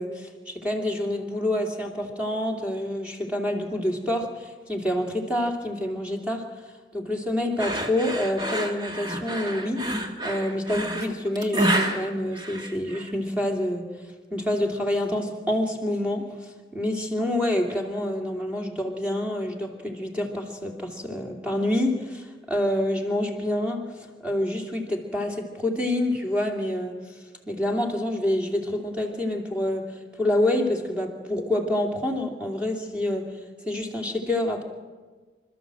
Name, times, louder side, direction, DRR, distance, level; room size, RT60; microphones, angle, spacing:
voice 1, 0.0-6.5 6.9-9.9 10.2-13.9 14.3-16.3 16.7-23.8 24.2-27.0 27.5-29.8 30.2-33.2 33.6-34.6, left 1 dB, 5° right, 1 dB, 2.7 m, -27 dB
sound 1, 7.6-13.1, right 1 dB, 25° right, 1.7 m, -28 dB
27.0 x 13.0 x 7.7 m, 1.4 s
head